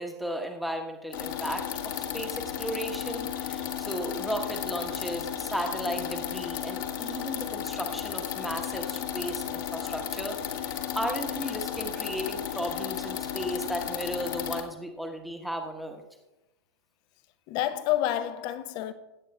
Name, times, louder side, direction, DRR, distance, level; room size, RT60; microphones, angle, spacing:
voice 1, 0.0-16.0, equal, ahead, 1.2 m, -35 dB
sound 1, 1.1-14.6, left 10 dB, 45° left, 1.4 m, -34 dB
voice 2, 9.4-9.9 17.5-18.9, left 13 dB, 30° left, 0.8 m, -30 dB
21.0 x 9.4 x 2.3 m
figure-of-eight pair, 105°, 14 cm